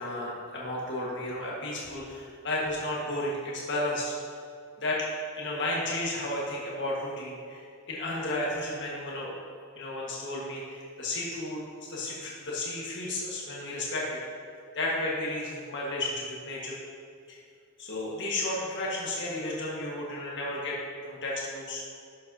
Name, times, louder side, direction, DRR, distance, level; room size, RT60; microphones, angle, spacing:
voice 1, 0.0-4.1 4.8-5.1 5.4-9.3 9.8-11.6 11.9-14.2 14.7-16.8 17.3-17.4 17.8-20.8 21.0-21.8, left 1 dB, 55° left, -5 dB, 1.6 m, -33 dB
11.0 x 7.6 x 2.8 m, 2.4 s
head